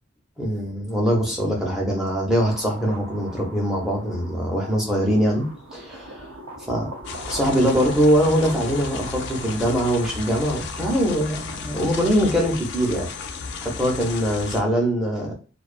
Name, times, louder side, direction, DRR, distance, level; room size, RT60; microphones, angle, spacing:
voice 1, 0.4-5.4 5.7-6.3 6.7-6.9 7.3-13.1 13.6-15.3, equal, ahead, -2 dB, 0.6 m, -22 dB
sound 1, 2.4-11.2, right 1 dB, 75° right, 0.6 m, -40 dB
sound 2, 7.0-14.6, left 4 dB, 55° left, 0.3 m, -34 dB
2.3 x 2.3 x 2.4 m, 0.37 s
head